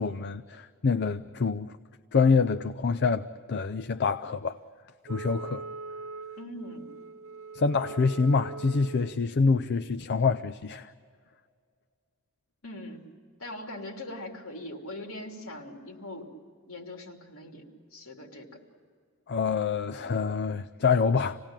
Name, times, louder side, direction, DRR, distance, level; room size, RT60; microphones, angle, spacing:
voice 1, 0.0-1.7 2.1-4.6 5.1-5.6 7.5-10.9 19.3-21.4, left 5 dB, 55° left, 0.5 m, -26 dB
Wind instrument woodwind instrument, 5.1-9.2, right 4 dB, 65° right, 0.8 m, -41 dB
voice 2, 6.4-6.9 12.6-13.1 13.4-16.3 16.7-17.6 17.9-18.5, left 1 dB, 75° left, 3.1 m, -41 dB
27.5 x 18.0 x 8.9 m
head